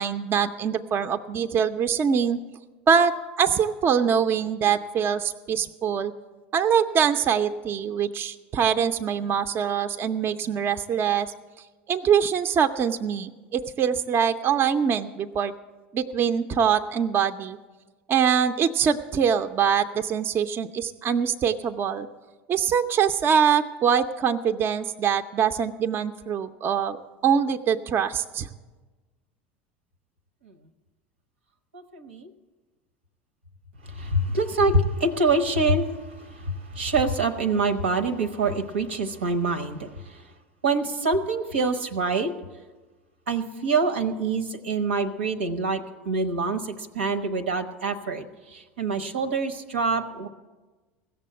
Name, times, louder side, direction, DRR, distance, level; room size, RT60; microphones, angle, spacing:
voice 1, 0.0-2.4 2.9-6.1 6.5-11.3 11.9-15.5 15.9-17.6 18.1-22.1 22.5-28.5, right 7 dB, 40° right, 8 dB, 0.5 m, -23 dB
voice 2, 31.7-32.3 33.8-40.3 40.6-42.3 43.3-50.3, right 3 dB, 85° right, 10 dB, 0.8 m, -26 dB
15.5 x 6.9 x 7.6 m, 1.3 s
hypercardioid pair, 80°, 6 cm